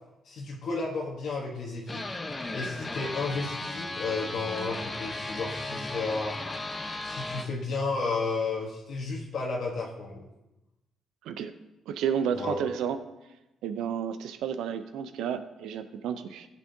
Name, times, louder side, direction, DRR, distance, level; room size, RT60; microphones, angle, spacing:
voice 1, 0.2-2.0 2.5-6.3 7.0-10.3 12.3-12.6, left 3 dB, 65° left, -3 dB, 1.3 m, -32 dB
sound 1, 1.9-7.4, left 2 dB, 20° left, 0.9 m, -35 dB
voice 2, 11.9-13.0 13.6-16.5, right 8 dB, 85° right, 10 dB, 0.7 m, -31 dB
15.0 x 7.3 x 2.8 m, 0.98 s
cardioid pair, 90°, 0 cm